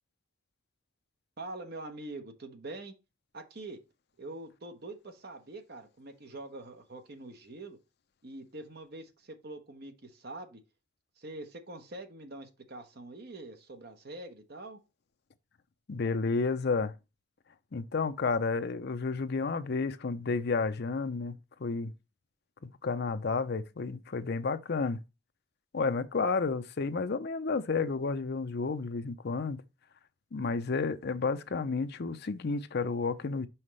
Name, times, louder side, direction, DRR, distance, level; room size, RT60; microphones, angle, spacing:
voice 1, 1.4-2.9 3.3-3.8 4.2-7.8 8.2-10.6 11.2-14.8, right 2 dB, 50° right, 1.1 m, -44 dB
voice 2, 15.9-16.9 17.7-21.3 21.6-21.9 22.6-25.0 25.7-29.6 30.3-33.5, left 4 dB, 50° left, 0.5 m, -31 dB
5.7 x 5.3 x 3.2 m
head